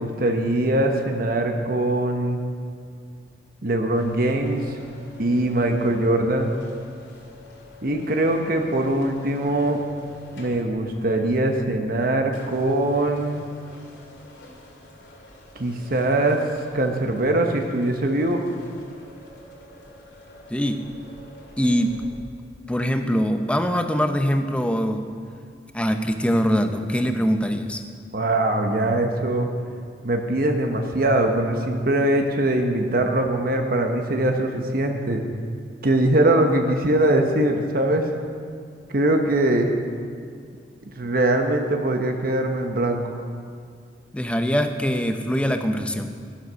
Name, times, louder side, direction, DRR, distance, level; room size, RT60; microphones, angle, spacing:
voice 1, 0.0-2.4 3.6-4.8 5.2-6.5 7.8-9.8 10.4-13.5 15.5-16.4 16.7-18.4 28.1-29.5 30.0-35.2 35.8-38.1 38.9-39.7 41.0-43.1, right 1 dB, 55° right, 4 dB, 1.1 m, -22 dB
sound 1, 3.9-22.1, left 3 dB, 80° left, 2.9 m, -45 dB
voice 2, 21.6-22.0 22.7-25.0 25.7-27.8 44.1-46.1, equal, 5° left, 6 dB, 0.7 m, -23 dB
12.5 x 11.5 x 6.3 m, 2.1 s
head